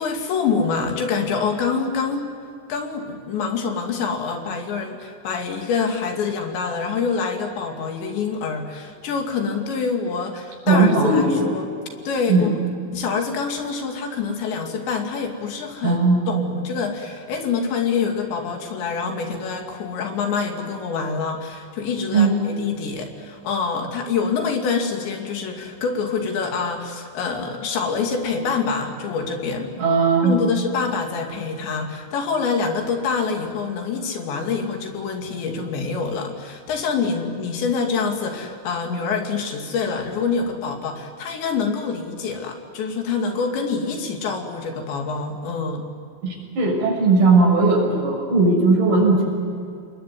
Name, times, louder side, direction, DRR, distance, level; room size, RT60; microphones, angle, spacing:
voice 1, 0.0-2.3 2.7-11.7 12.1-12.5 12.9-16.0 16.3-29.7 30.2-45.9, left 5 dB, 70° left, 4 dB, 4.8 m, -26 dB
voice 2, 10.7-11.4 12.3-12.5 15.8-16.2 22.1-22.3 29.8-30.4 46.2-49.2, right 3 dB, 60° right, 0 dB, 8.4 m, -17 dB
28.5 x 21.5 x 9.5 m, 2.4 s
omnidirectional pair, 5.4 m